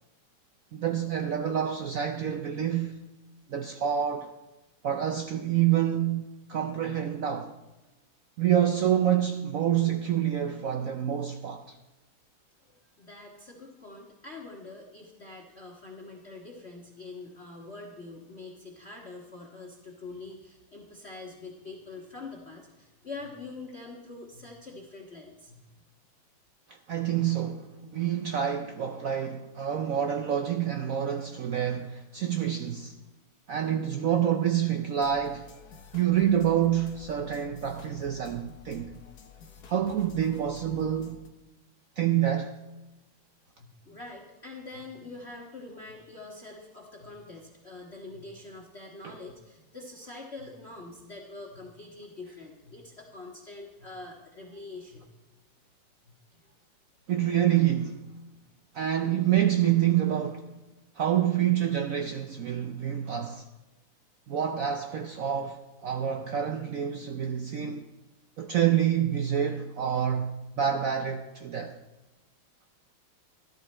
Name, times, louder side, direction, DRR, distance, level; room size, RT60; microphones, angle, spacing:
voice 1, 0.7-3.0 3.5-4.3 4.8-7.5 8.4-11.8 26.7-27.7 27.9-32.9 33.5-35.5 35.9-38.9 39.7-41.2 42.0-42.6 49.0-49.1 57.1-58.0 58.7-60.5 61.0-63.5 64.3-67.9 68.4-71.8, right 10 dB, 85° right, 0.7 m, -27 dB
voice 2, 13.0-25.6 43.6-55.1 56.4-56.5, left 3 dB, 35° left, 1.5 m, -44 dB
sound 1, 35.0-41.3, left 4 dB, 55° left, 1.5 m, -50 dB
13.5 x 13.0 x 4.3 m
omnidirectional pair, 2.2 m